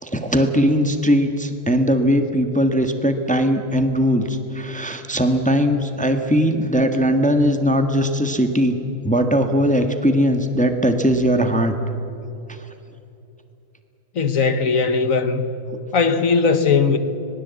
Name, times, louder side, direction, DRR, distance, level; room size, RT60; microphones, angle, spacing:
voice 1, 0.0-8.8 9.0-11.7, equal, 5° left, 1.0 m, -19 dB
voice 2, 14.1-15.6 15.9-17.0, left 5 dB, 50° left, 1.2 m, -18 dB
25.5 x 20.0 x 8.3 m
omnidirectional pair, 2.3 m